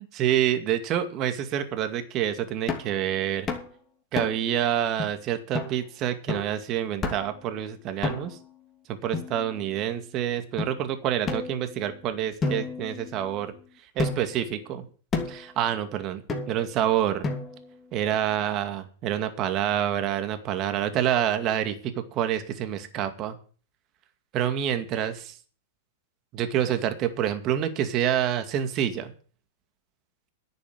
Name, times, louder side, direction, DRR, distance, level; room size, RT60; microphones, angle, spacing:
voice 1, 0.0-3.5 4.1-8.4 8.9-13.5 14.0-14.8 15.3-17.3 17.9-21.8 22.1-23.4 24.3-25.3 26.3-29.1, right 10 dB, 40° right, 8 dB, 2.2 m, -27 dB
sound 1, 2.7-3.0 3.5-3.7 4.2-4.5 5.0-5.1 5.5-5.8 6.3-6.6 7.0-7.4 8.0-8.5 9.1-9.8 10.6-10.7 11.3-12.0 12.4-13.5 14.0-14.4 15.1-15.5 16.3-16.7 17.2-17.7, left 3 dB, 20° left, 2.8 m, -31 dB
11.0 x 6.9 x 9.4 m, 0.41 s
hypercardioid pair, 110°, 0 cm